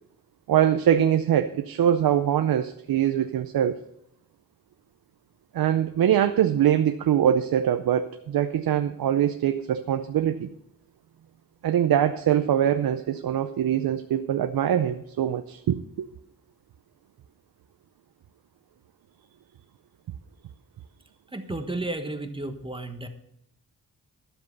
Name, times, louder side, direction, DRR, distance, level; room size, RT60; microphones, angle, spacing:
voice 1, 0.5-3.8 5.5-10.5 11.6-16.1, right 10 dB, 80° right, 9 dB, 0.6 m, -23 dB
voice 2, 21.3-23.1, right 2 dB, 15° right, 7 dB, 1.3 m, -32 dB
12.0 x 7.8 x 5.4 m, 0.75 s
cardioid pair, 75°, 35 cm